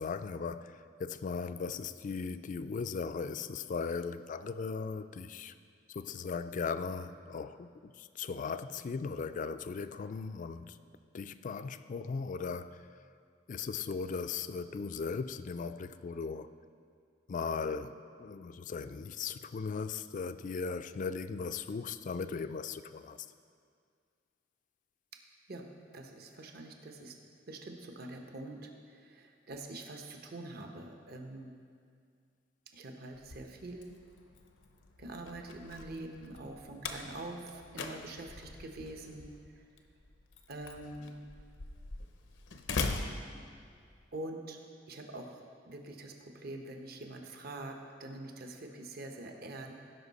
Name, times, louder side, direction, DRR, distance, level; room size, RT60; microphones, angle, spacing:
voice 1, 0.0-5.5 5.9-10.8 11.1-12.8 13.5-16.5 17.3-23.2, left 5 dB, 45° left, 12 dB, 0.3 m, -38 dB
voice 2, 25.9-27.2 27.5-31.5 32.7-34.0 35.0-39.7 40.5-41.2 44.1-44.6 44.9-49.7, right 2 dB, 55° right, 3 dB, 0.9 m, -45 dB
Slam, 33.1-44.0, left 3 dB, 80° left, 0.7 m, -42 dB
16.5 x 5.5 x 4.1 m, 2.2 s
head